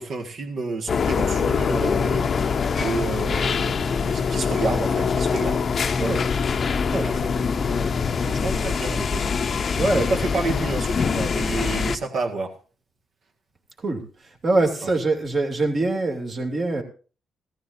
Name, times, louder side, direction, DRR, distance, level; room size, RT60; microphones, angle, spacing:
voice 1, 0.0-5.7 6.0-6.3 6.9-9.3 9.9-12.5 14.8-14.9, right 3 dB, 60° right, 3 dB, 1.8 m, -30 dB
sound 1, 0.9-12.0, left 5 dB, 45° left, 0.7 m, -24 dB
voice 2, 6.9-7.2 9.8-10.1 13.8-16.8, right 2 dB, 45° right, 2 dB, 2.8 m, -24 dB
16.5 x 14.0 x 2.7 m, 0.37 s
cardioid pair, 90°, 0 cm